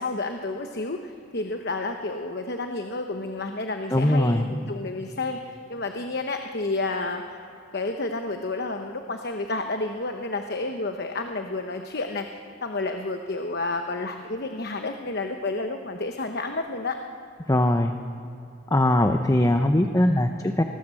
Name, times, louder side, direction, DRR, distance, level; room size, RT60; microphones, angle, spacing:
voice 1, 0.0-7.4 7.7-12.3 12.6-17.0, left 2 dB, 55° left, 5 dB, 1.0 m, -30 dB
voice 2, 3.9-4.4 17.5-17.9 18.7-20.6, left 1 dB, 15° left, 6 dB, 0.7 m, -21 dB
24.5 x 19.5 x 7.7 m, 2.7 s
head